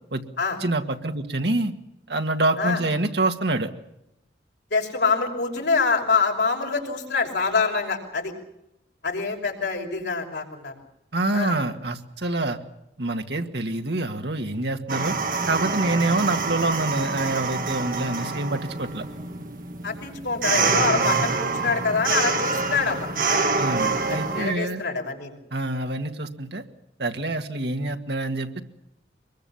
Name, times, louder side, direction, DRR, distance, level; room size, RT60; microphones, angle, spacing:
voice 1, 0.6-1.7 2.1-3.7 11.1-12.6 13.0-15.2 15.5-19.1 23.6-24.8 25.5-26.6 27.0-28.6, right 2 dB, 75° right, 5 dB, 2.1 m, -26 dB
voice 2, 4.7-8.3 9.0-10.8 11.3-11.6 19.8-23.5 24.1-25.4, left 4 dB, 85° left, 1 dB, 5.9 m, -25 dB
sound 1, 14.9-24.5, right 4 dB, 50° right, 1.9 m, -26 dB
24.0 x 22.0 x 7.2 m, 0.85 s
head